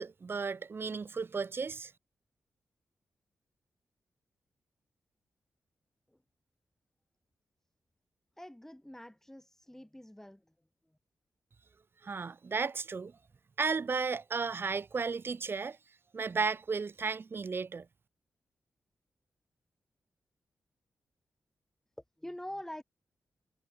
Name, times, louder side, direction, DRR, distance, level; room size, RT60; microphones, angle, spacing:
voice 1, 0.0-1.9 12.0-13.1 13.6-15.8 16.1-17.9, right 5 dB, 45° right, 0.5 m, -34 dB
voice 2, 8.4-10.5 10.9-11.0 22.2-22.8, left 1 dB, 5° left, 1.3 m, -45 dB
supercardioid pair, 40°, 5 cm